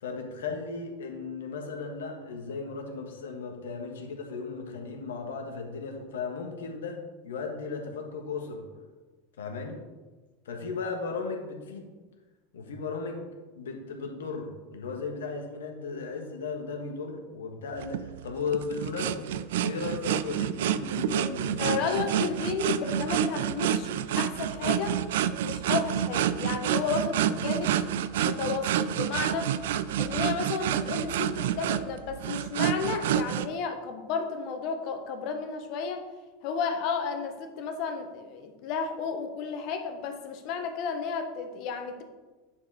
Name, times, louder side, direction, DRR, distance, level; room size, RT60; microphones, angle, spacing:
voice 1, 0.0-7.0 7.2-8.6 9.4-9.8 10.4-11.9 12.5-13.3 13.5-19.3 19.6-22.0 22.4-22.5, left 4 dB, 75° left, 3 dB, 1.5 m, -36 dB
sound 1, 17.8-33.5, right 10 dB, 70° right, 0.4 m, -28 dB
voice 2, 21.6-25.0 25.4-27.7 28.1-29.5 30.0-36.0 36.4-42.0, left 5 dB, 55° left, 6 dB, 1.3 m, -32 dB
9.4 x 4.8 x 4.8 m, 1.2 s
hypercardioid pair, 85°, 0 cm